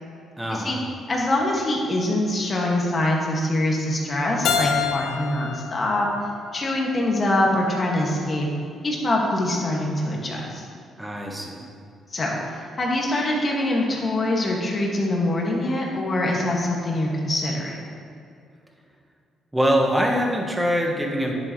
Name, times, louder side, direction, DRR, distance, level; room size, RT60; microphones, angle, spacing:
voice 1, 0.4-0.8 11.0-11.7 19.5-21.3, equal, 10° right, 1 dB, 1.4 m, -23 dB
voice 2, 1.1-6.1 6.5-8.5 8.8-10.6 12.1-17.8, left 1 dB, 35° left, -2 dB, 2.0 m, -24 dB
Keyboard (musical), 4.4-7.3, left 7 dB, 80° left, 0.8 m, -28 dB
10.5 x 8.2 x 3.2 m, 2.4 s
cardioid pair, 90°, 0 cm